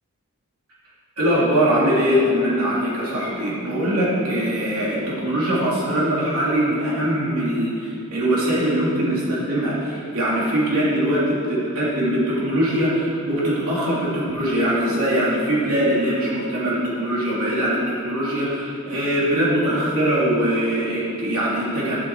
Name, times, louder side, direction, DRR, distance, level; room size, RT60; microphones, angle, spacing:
voice 1, 1.2-22.0, equal, 80° right, -7 dB, 3.0 m, -22 dB
12.0 x 7.7 x 4.8 m, 2.5 s
head